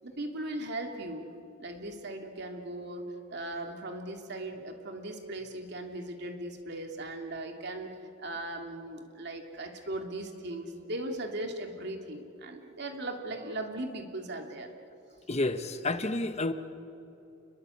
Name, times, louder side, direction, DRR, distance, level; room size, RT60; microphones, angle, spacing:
voice 1, 0.0-1.3 1.6-7.9 8.2-14.7, right 1 dB, 60° right, 4 dB, 2.8 m, -38 dB
voice 2, 15.3-16.5, left 2 dB, 35° left, 10 dB, 1.1 m, -30 dB
30.0 x 21.0 x 8.5 m, 2.9 s
head